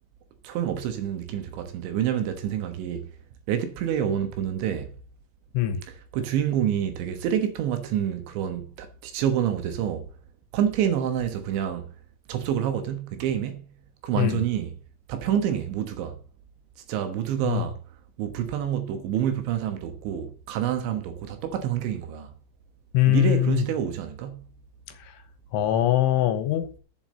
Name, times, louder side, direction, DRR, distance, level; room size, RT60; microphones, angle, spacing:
voice 1, 0.4-3.1 3.5-4.9 5.8-10.1 10.5-11.9 12.3-13.7 14.0-14.7 15.1-16.2 16.9-17.8 18.2-22.3 23.1-24.4, right 9 dB, 70° right, 3.4 m, -27 dB
voice 2, 22.9-23.6 25.1-25.2 25.5-26.7, left 14 dB, 75° left, 3.4 m, -22 dB
8.5 x 7.2 x 7.4 m
omnidirectional pair, 5.8 m